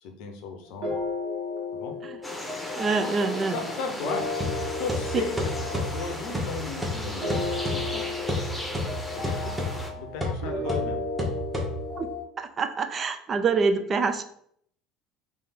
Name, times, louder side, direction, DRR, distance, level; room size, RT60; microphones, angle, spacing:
voice 1, 0.0-1.0 1.7-1.9 3.5-4.3 4.8-7.4 7.7-8.1 9.1-9.5 10.0-11.0, left 5 dB, 60° left, 5 dB, 0.7 m, -35 dB
sound 1, 0.8-12.2, left 3 dB, 60° right, 1.0 m, -34 dB
sound 2, 2.2-9.9, left 1 dB, 5° left, 1.0 m, -37 dB
voice 2, 2.7-3.6 12.0-12.1 12.4-14.2, right 4 dB, 35° right, 8 dB, 0.4 m, -26 dB
sound 3, 4.4-12.1, left 1 dB, 10° right, 1.2 m, -32 dB
3.4 x 3.3 x 4.2 m, 0.67 s
figure-of-eight pair, 65°, 0 cm